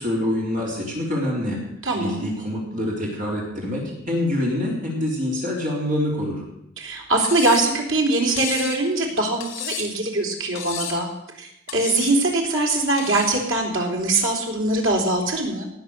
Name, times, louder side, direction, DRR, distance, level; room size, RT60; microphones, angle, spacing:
voice 1, 0.0-1.6 1.9-6.4, left 1 dB, 40° right, -3 dB, 3.8 m, -26 dB
voice 2, 1.8-2.3 6.8-11.1 11.4-15.7, right 2 dB, 75° right, 0 dB, 3.6 m, -22 dB
Cutlery silverware, 7.2-7.8 8.4-8.8 9.4-10.0 10.6-11.1 11.7-12.2 13.0-13.4, left 8 dB, 70° left, 2.6 m, -32 dB
18.5 x 7.8 x 6.7 m, 0.79 s
head